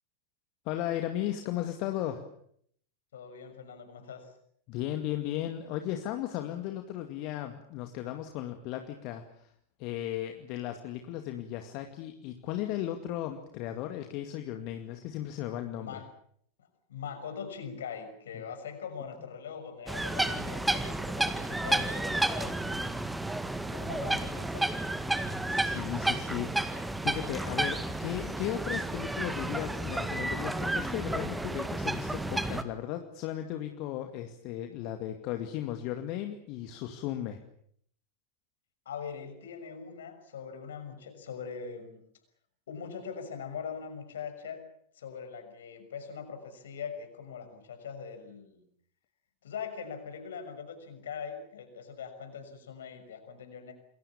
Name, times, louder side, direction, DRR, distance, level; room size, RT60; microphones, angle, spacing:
voice 1, 0.7-2.2 4.7-9.5 9.8-15.9 25.5-37.4, left 12 dB, 40° left, 6 dB, 2.3 m, -36 dB
voice 2, 3.1-4.3 15.8-16.1 16.6-22.9 23.6-24.7 38.8-42.0 42.7-44.6 44.9-48.6 49.4-53.7, left 6 dB, 65° left, 7 dB, 6.3 m, -42 dB
sound 1, 19.9-32.6, right 2 dB, 5° right, 1.9 m, -31 dB
28.0 x 22.5 x 7.2 m, 0.66 s
figure-of-eight pair, 90°, 0 cm